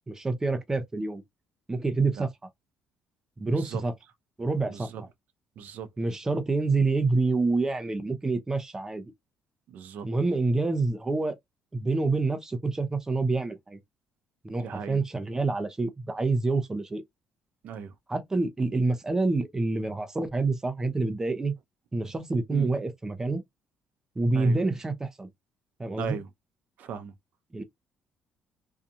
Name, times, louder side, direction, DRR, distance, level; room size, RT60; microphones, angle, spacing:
voice 1, 0.1-1.2 1.7-2.3 3.4-3.9 4.4-4.9 6.0-9.1 10.0-11.4 11.7-13.8 14.4-17.0 18.1-21.5 21.9-23.4 24.2-25.3 25.8-26.2 27.5-27.6, right 3 dB, 20° right, 0.7 m, -27 dB
voice 2, 3.4-3.8 4.7-5.0 5.6-5.9 9.7-10.1 14.6-15.0 17.6-17.9 22.5-22.7 24.3-24.6 26.0-26.2 26.8-27.1, right 7 dB, 65° right, 0.6 m, -37 dB
2.7 x 2.4 x 2.6 m
cardioid pair, 85°, 3 cm